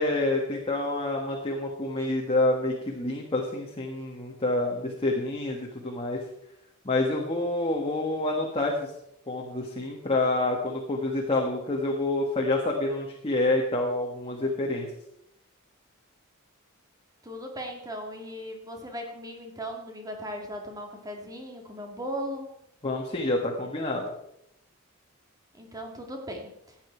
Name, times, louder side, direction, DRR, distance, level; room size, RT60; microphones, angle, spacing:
voice 1, 0.0-6.2 6.8-8.9 9.3-14.9 22.8-24.0, left 2 dB, 25° left, -1 dB, 1.6 m, -27 dB
voice 2, 17.2-22.5 25.5-26.8, equal, 15° right, 2 dB, 2.1 m, -37 dB
15.0 x 9.2 x 4.5 m, 0.77 s
head